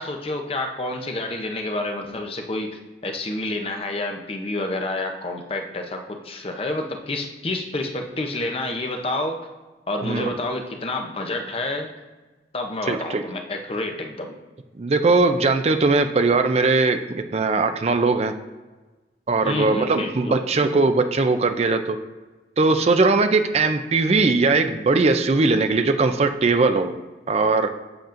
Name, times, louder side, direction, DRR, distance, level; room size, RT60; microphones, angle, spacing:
voice 1, 0.0-9.4 9.9-11.9 12.5-14.3 19.4-20.4, left 2 dB, 35° left, 4 dB, 0.7 m, -29 dB
voice 2, 12.9-13.2 14.8-18.3 19.3-22.0 22.6-27.0 27.3-27.7, right 3 dB, 35° right, 8 dB, 0.4 m, -20 dB
7.8 x 7.1 x 2.5 m, 1.2 s
head